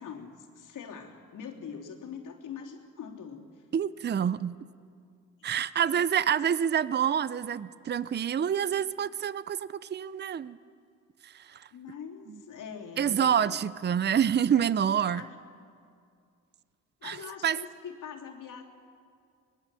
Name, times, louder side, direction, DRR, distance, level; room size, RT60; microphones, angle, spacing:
voice 1, 0.0-3.7 5.8-6.1 11.7-13.6 14.5-14.6 15.2-15.4 17.0-18.6, left 7 dB, 75° left, 1 dB, 3.2 m, -43 dB
voice 2, 3.7-4.6 5.4-10.6 11.2-11.7 13.0-15.2 17.0-17.2 17.4-17.6, right 8 dB, 35° right, 17 dB, 0.6 m, -27 dB
24.0 x 20.0 x 7.6 m, 2.3 s
cardioid pair, 100°, 32 cm